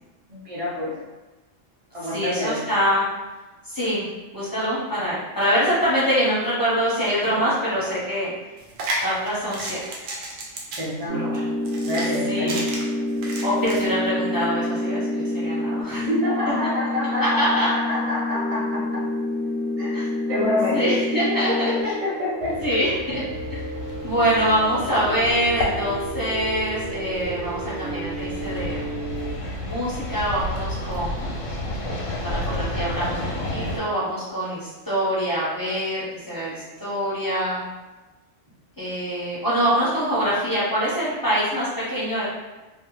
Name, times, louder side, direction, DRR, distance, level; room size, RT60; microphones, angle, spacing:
voice 1, 0.3-1.0 1.9-2.6 10.8-11.3 11.9-12.7 16.1-19.0 19.8-22.6, left 1 dB, 40° right, -5 dB, 0.5 m, -27 dB
voice 2, 2.1-3.0 3.6-4.0 4.3-8.3 9.0-9.8 11.2-11.4 12.2-12.6 13.4-16.1 17.2-17.7 19.9-20.0 20.7-21.7 22.6-23.2 23.5-23.6 24.0-28.9 29.6-31.4 32.2-37.6 38.8-42.2, equal, 30° left, -9 dB, 0.4 m, -24 dB
sound 1, 8.6-13.9, right 2 dB, 85° right, 1.0 m, -32 dB
sound 2, 11.1-29.3, left 1 dB, 60° right, 1.0 m, -29 dB
sound 3, 22.4-33.8, left 1 dB, 85° left, 1.0 m, -31 dB
2.6 x 2.0 x 2.9 m, 1.1 s
omnidirectional pair, 1.3 m